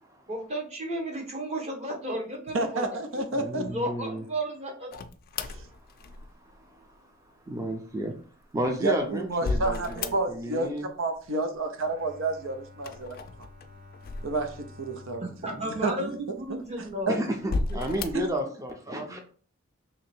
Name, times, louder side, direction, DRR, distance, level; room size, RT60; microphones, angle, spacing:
voice 1, 0.3-2.8 3.6-4.9 15.2-17.6, right 1 dB, 35° right, 1 dB, 1.0 m, -33 dB
voice 2, 2.5-3.7 5.4-5.7 8.7-13.5 14.2-15.3 15.6-17.2 18.1-18.3, right 2 dB, 90° right, 6 dB, 0.6 m, -30 dB
voice 3, 3.4-4.2 6.6-6.9 7.5-8.1 8.5-10.9 17.1-19.2, right 1 dB, 15° right, 3 dB, 0.5 m, -32 dB
sound 1, 4.9-6.6 8.4-10.6 10.9-11.6 12.7-14.9 15.5-15.6 16.4-16.9 17.4-18.4, left 3 dB, 50° left, 0.4 m, -34 dB
Bowed string instrument, 11.7-17.0, left 3 dB, 70° right, 1.0 m, -51 dB
3.0 x 2.8 x 4.3 m, 0.43 s
head